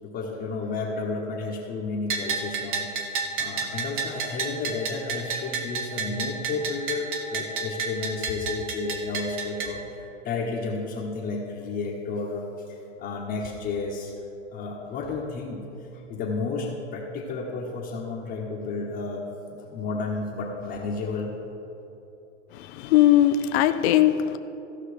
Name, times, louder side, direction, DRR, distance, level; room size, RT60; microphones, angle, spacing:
voice 1, 0.0-14.1 14.5-19.2 19.5-21.3, left 3 dB, 25° left, -5 dB, 1.2 m, -32 dB
Bell, 2.1-9.7, right 5 dB, 35° right, 1.2 m, -31 dB
voice 2, 22.5-24.4, left 12 dB, 55° left, 9 dB, 0.6 m, -20 dB
15.5 x 5.7 x 5.1 m, 3.0 s
hypercardioid pair, 135°, 38 cm